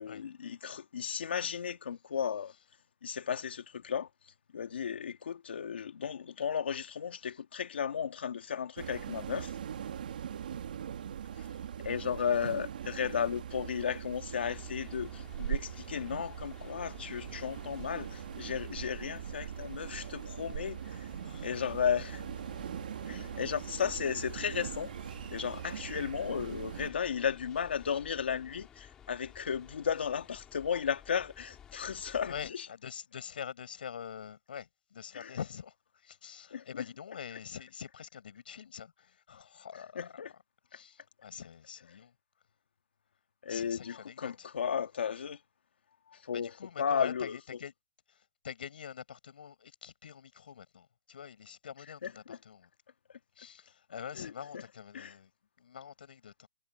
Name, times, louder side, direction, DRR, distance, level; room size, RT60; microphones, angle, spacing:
voice 1, 0.0-2.5 3.0-4.1 4.5-9.5 11.8-21.1 21.4-22.2 23.1-24.9 25.3-32.7 35.1-35.4 36.5-36.6 40.0-40.3 43.4-45.4 46.1-46.5 46.8-47.4 52.0-52.4 54.2-54.6 54.9-55.1, left 7 dB, 85° left, 2.1 m, -34 dB
sound 1, 8.8-26.9, right 9 dB, 55° right, 2.0 m, -41 dB
voice 2, 11.3-11.7 21.2-21.5 32.3-40.2 40.7-42.1 43.5-44.5 46.3-47.7 48.1-52.7 53.4-55.3 55.6-56.5, left 8 dB, 60° left, 6.2 m, -45 dB
sound 2, 14.4-32.5, left 9 dB, 10° left, 2.4 m, -55 dB
hypercardioid pair, 180°, 6 cm